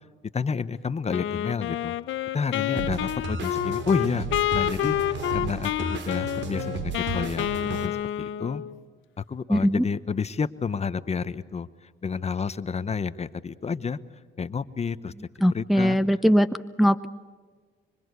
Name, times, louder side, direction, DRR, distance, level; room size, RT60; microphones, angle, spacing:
voice 1, 0.3-1.9 2.3-4.3 4.5-8.6 9.3-14.0 14.4-15.1 15.4-16.0, left 5 dB, 35° left, 14 dB, 1.0 m, -30 dB
Wind instrument woodwind instrument, 1.1-8.8, left 12 dB, 80° left, 1.0 m, -29 dB
sound 1, 2.8-7.9, right 4 dB, 65° right, 3.5 m, -34 dB
voice 2, 9.5-9.8 15.4-16.5 16.8-17.1, equal, ahead, 10 dB, 0.7 m, -20 dB
25.5 x 24.5 x 8.2 m, 1.5 s
cardioid pair, 90°, 20 cm